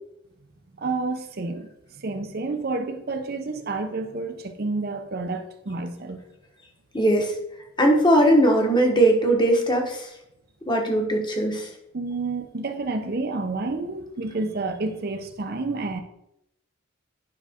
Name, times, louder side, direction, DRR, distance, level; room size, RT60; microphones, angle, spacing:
voice 1, 0.8-1.7 2.0-6.2 11.9-16.0, right 3 dB, 45° right, 7 dB, 0.6 m, -29 dB
voice 2, 6.9-7.3 7.8-10.1 10.7-11.7, right 1 dB, 20° left, 2 dB, 1.2 m, -19 dB
9.9 x 5.5 x 3.6 m, 0.81 s
head